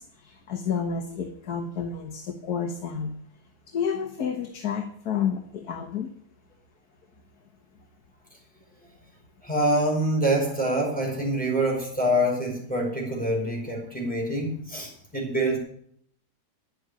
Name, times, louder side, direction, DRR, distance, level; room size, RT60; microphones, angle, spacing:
voice 1, 0.0-3.2 3.7-6.1, left 7 dB, 65° left, 4 dB, 1.7 m, -30 dB
voice 2, 9.4-15.6, right 1 dB, 5° left, -2 dB, 4.8 m, -25 dB
10.5 x 8.8 x 9.9 m, 0.66 s
omnidirectional pair, 1.7 m